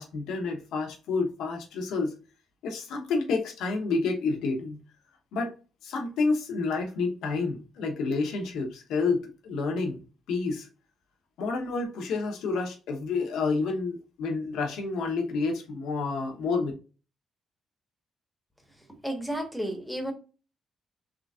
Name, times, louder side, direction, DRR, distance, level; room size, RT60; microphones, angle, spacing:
voice 1, 0.0-2.2 2.6-4.8 5.3-5.5 5.8-10.7 11.4-16.7, left 4 dB, 85° left, 0.9 m, -29 dB
voice 2, 19.0-20.1, right 1 dB, ahead, 1.3 m, -32 dB
3.8 x 3.2 x 2.4 m
cardioid pair, 70°, 0 cm